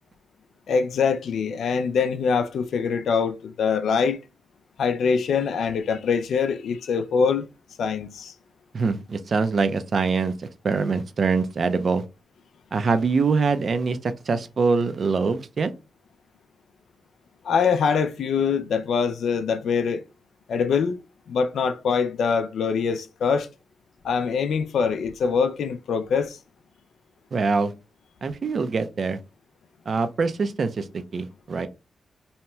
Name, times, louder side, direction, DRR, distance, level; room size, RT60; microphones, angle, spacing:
voice 1, 0.7-4.2 4.8-7.5 7.8-8.3 17.4-20.0 20.5-21.0 21.3-23.5 24.0-26.4, left 6 dB, 80° left, 0.3 m, -23 dB
voice 2, 8.7-12.0 12.7-15.7 27.3-27.7 28.2-29.2 29.9-31.7, right 4 dB, 55° right, 0.4 m, -24 dB
2.8 x 2.2 x 3.0 m
cardioid pair, 80°, 0 cm